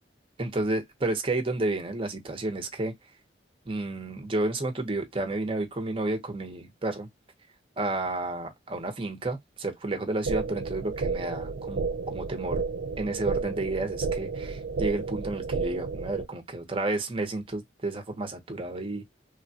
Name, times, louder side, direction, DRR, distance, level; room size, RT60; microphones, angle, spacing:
voice 1, 0.4-2.9 3.7-7.1 7.8-12.6 13.0-19.1, right 2 dB, 30° right, 0.8 m, -31 dB
sound 1, 10.3-16.3, right 4 dB, 80° right, 0.4 m, -31 dB
3.3 x 2.3 x 2.6 m
head